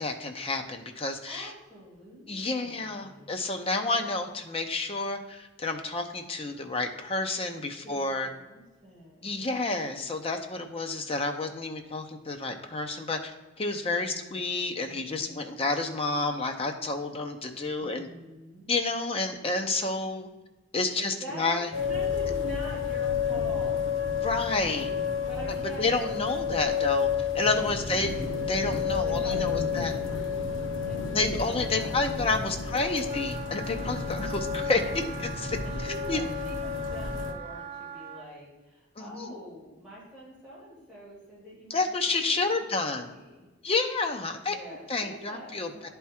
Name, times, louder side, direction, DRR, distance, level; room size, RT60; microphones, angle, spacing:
voice 1, 0.0-1.5 2.3-8.3 9.2-13.3 13.6-18.1 18.7-20.3 20.7-21.7 24.2-24.9 25.8-27.1 27.3-28.1 28.5-29.9 31.1-35.6 36.1-36.2 39.0-39.3 41.7-43.1 43.6-44.6 44.9-45.9, left 3 dB, 30° left, 5 dB, 0.7 m, -30 dB
voice 2, 1.3-3.4 7.8-9.5 13.9-14.5 15.1-15.7 17.8-18.7 20.9-24.1 25.2-26.4 27.9-28.3 29.0-33.2 33.9-34.0 35.6-41.9 42.3-43.5 44.4-45.9, equal, 5° right, -8 dB, 2.7 m, -45 dB
sound 1, 21.7-37.3, left 6 dB, 80° left, 0.8 m, -30 dB
Wind instrument woodwind instrument, 33.0-38.3, right 7 dB, 40° right, 1.2 m, -42 dB
10.5 x 3.6 x 4.3 m, 1.1 s
head